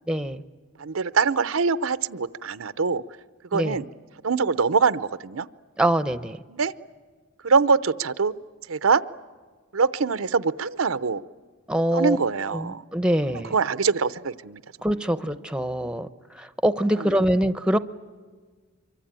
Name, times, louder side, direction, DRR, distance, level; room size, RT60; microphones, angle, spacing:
voice 1, 0.1-0.4 3.5-3.8 5.8-6.4 11.7-12.2 12.5-13.5 14.8-16.1 16.3-17.8, right 1 dB, 5° right, 13 dB, 0.7 m, -24 dB
voice 2, 0.8-3.0 3.5-3.9 4.2-5.5 6.5-6.7 7.4-8.3 8.7-9.0 9.7-11.2 11.9-12.8 13.5-14.6 17.0-17.2, right 5 dB, 85° right, 14 dB, 0.7 m, -23 dB
25.0 x 24.0 x 9.0 m, 1.5 s
head